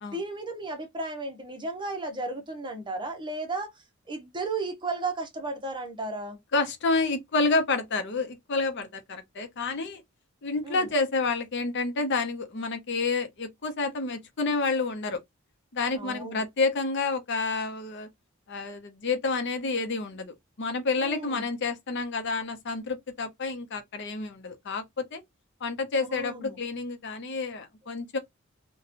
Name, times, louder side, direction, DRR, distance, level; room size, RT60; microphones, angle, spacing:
voice 1, 0.1-3.7 4.1-6.4 10.6-10.9 15.9-16.4 21.0-21.4 26.1-26.6, right 3 dB, 25° right, 0.7 m, -34 dB
voice 2, 6.5-10.0 10.4-15.2 15.7-18.1 18.5-25.2 25.6-28.2, left 3 dB, 60° left, 0.6 m, -29 dB
2.9 x 2.2 x 2.5 m
head